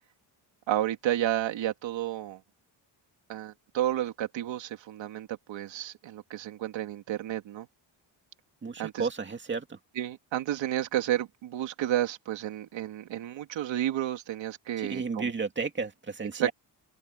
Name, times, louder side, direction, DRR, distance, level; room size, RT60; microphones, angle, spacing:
voice 1, 0.7-2.4 3.3-7.7 8.8-9.0 10.0-15.3 16.3-16.5, right 12 dB, 80° right, 2.6 m, -31 dB
voice 2, 8.6-9.8 14.8-16.5, right 4 dB, 25° right, 2.3 m, -33 dB
cardioid pair, 165°, 44 cm